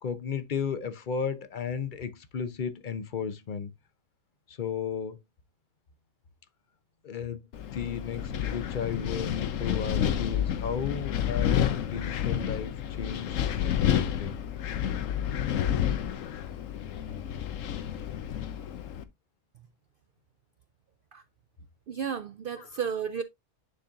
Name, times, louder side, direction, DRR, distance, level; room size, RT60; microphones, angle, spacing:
voice 1, 0.0-3.7 4.5-5.2 7.0-7.4 7.7-14.4 22.6-22.7, left 6 dB, 45° left, 0.8 m, -34 dB
Wind, 7.5-19.0, left 9 dB, 85° left, 1.1 m, -30 dB
voice 2, 21.9-23.2, right 7 dB, 65° right, 0.6 m, -33 dB
9.9 x 4.3 x 2.4 m
omnidirectional pair, 1.3 m